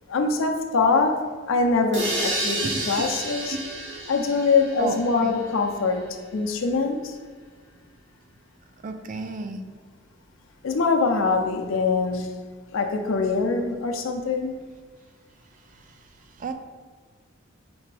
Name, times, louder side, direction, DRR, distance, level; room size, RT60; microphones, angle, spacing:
voice 1, 0.1-1.2 1.5-3.6 4.1-6.1 6.3-7.2 10.6-12.3 12.7-14.5, left 4 dB, 75° left, 4 dB, 0.5 m, -23 dB
sound 1, 1.9-5.7, right 1 dB, 60° right, 1.2 m, -30 dB
voice 2, 2.6-3.1 3.5-3.6 4.8-5.4 8.8-9.6 16.4-16.5, right 3 dB, 40° right, 7 dB, 0.3 m, -32 dB
4.3 x 3.3 x 3.3 m, 1.5 s
head